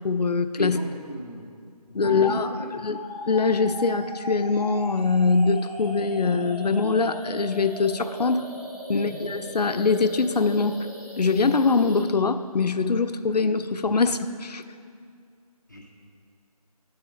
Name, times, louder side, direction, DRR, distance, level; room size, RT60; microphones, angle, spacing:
voice 1, 0.0-0.8 1.9-8.5 8.9-10.9 11.2-14.6, left 4 dB, 85° left, 10 dB, 0.5 m, -23 dB
voice 2, 0.6-1.4 1.9-2.7 8.9-9.1 15.7-15.9, equal, 30° left, -3 dB, 0.6 m, -34 dB
sound 1, 2.0-12.0, equal, 15° right, 1.7 m, -38 dB
10.5 x 4.1 x 5.1 m, 2.2 s
figure-of-eight pair, 170°, 20 cm